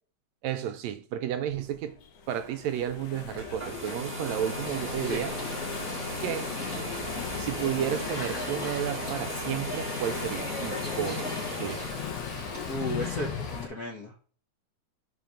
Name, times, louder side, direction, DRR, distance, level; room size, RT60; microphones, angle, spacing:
voice 1, 0.4-2.0 2.3-5.3 6.2-6.5 7.4-11.8, right 10 dB, 80° right, 1.8 m, -32 dB
Engine / Mechanisms, 1.5-13.7, left 7 dB, 90° left, 2.5 m, -38 dB
sound 1, 3.3-12.2, equal, 10° right, 0.7 m, -36 dB
sound 2, 4.6-13.6, left 1 dB, 40° left, 1.7 m, -42 dB
voice 2, 12.6-13.3 13.6-14.3, equal, 55° left, 1.0 m, -34 dB
6.0 x 4.6 x 5.0 m
omnidirectional pair, 3.3 m